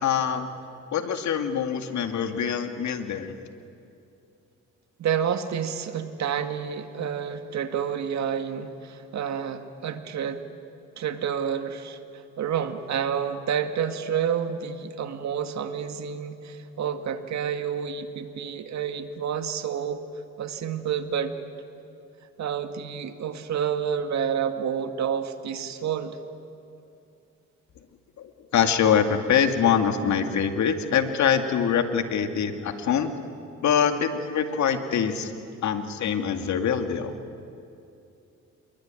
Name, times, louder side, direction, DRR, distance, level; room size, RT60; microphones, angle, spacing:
voice 1, 0.0-0.5 0.9-3.3 28.2-33.1 33.6-35.3 35.6-37.1, left 7 dB, 70° left, 7 dB, 2.3 m, -24 dB
voice 2, 5.0-10.4 11.0-20.0 20.4-21.4 22.4-26.2, right 8 dB, 65° right, 8 dB, 2.1 m, -29 dB
27.5 x 22.0 x 9.1 m, 2.6 s
cardioid pair, 90°, 30 cm